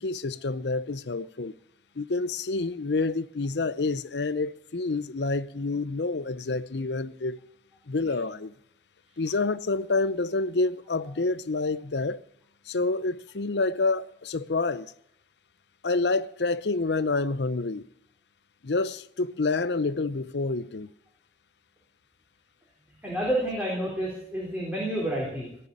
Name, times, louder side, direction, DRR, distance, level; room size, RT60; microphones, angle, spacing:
voice 1, 0.0-1.5 2.0-7.4 7.9-8.5 9.2-12.2 12.7-14.9 15.8-17.9 18.6-20.9, left 3 dB, 75° left, 0.7 m, -28 dB
voice 2, 23.0-25.5, right 1 dB, 10° right, 4.1 m, -29 dB
19.0 x 6.9 x 9.8 m
head